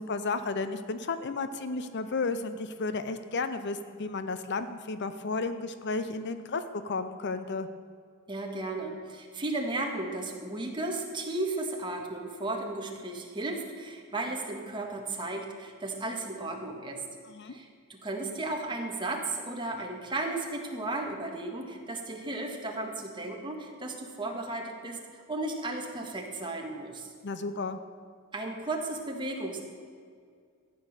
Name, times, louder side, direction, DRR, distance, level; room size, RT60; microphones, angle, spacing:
voice 1, 0.0-7.7 17.3-17.6 27.2-27.8, left 3 dB, 50° left, 10 dB, 0.6 m, -33 dB
voice 2, 8.3-17.0 17.5-27.1 28.3-29.6, right 2 dB, 20° right, 1 dB, 1.7 m, -35 dB
14.0 x 9.4 x 6.6 m, 2.2 s
head